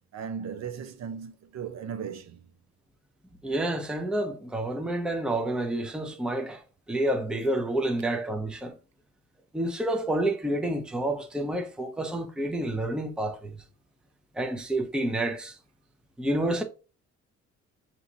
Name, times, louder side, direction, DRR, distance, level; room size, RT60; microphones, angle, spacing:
voice 1, 0.1-2.4, right 7 dB, 65° right, 0.7 m, -37 dB
voice 2, 3.4-6.6 6.9-8.7 9.5-13.5 14.4-15.5 16.2-16.6, right 1 dB, 5° right, 0.6 m, -29 dB
5.8 x 2.9 x 2.7 m
cardioid pair, 90°, 30 cm